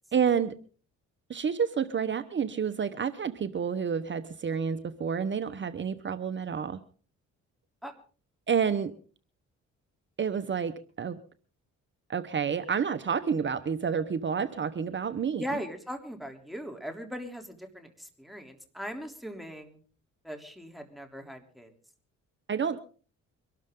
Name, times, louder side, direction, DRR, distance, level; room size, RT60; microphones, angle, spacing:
voice 1, 0.1-0.6 1.3-6.8 8.5-8.9 10.2-11.2 12.1-15.4 22.5-22.8, right 7 dB, 40° right, 12 dB, 1.0 m, -29 dB
voice 2, 15.4-19.8 20.2-21.7, equal, ahead, 5 dB, 3.3 m, -39 dB
23.5 x 12.5 x 3.8 m, 0.39 s
cardioid pair, 90°, 30 cm